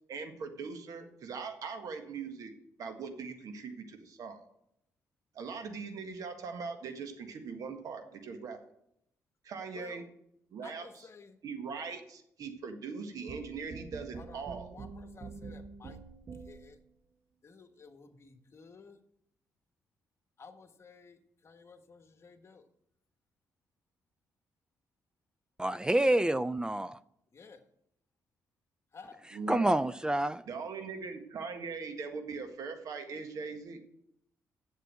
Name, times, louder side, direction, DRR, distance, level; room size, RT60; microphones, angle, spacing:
voice 1, 0.1-2.5 2.8-4.4 5.3-8.6 9.4-10.0 10.5-10.9 11.4-14.7 29.3-29.9 30.5-33.8, right 5 dB, 70° right, 1.7 m, -40 dB
voice 2, 9.7-10.1 10.6-11.4 14.1-16.0 16.4-16.8 17.4-19.0 20.4-22.7 27.3-27.6 28.9-29.2, left 5 dB, 45° left, 1.4 m, -53 dB
sound 1, 13.3-16.8, right 4 dB, 45° right, 1.0 m, -46 dB
voice 3, 25.6-27.0 29.5-30.4, right 1 dB, 10° right, 0.4 m, -27 dB
8.2 x 7.5 x 7.7 m
supercardioid pair, 70°, 6 cm